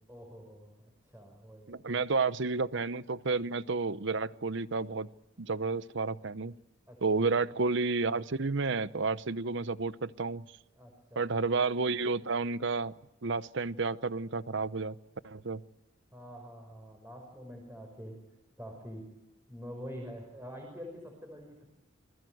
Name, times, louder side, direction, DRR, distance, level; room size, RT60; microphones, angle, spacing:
voice 1, 0.1-2.1 6.9-7.3 10.7-11.2 16.1-18.2 18.6-19.1 19.5-21.7, equal, 10° right, 5.5 m, -46 dB
voice 2, 1.7-5.1 5.4-6.5 7.0-10.4 11.2-12.9 13.2-14.9 15.2-15.6, right 4 dB, 65° right, 0.8 m, -31 dB
28.5 x 20.5 x 7.9 m
head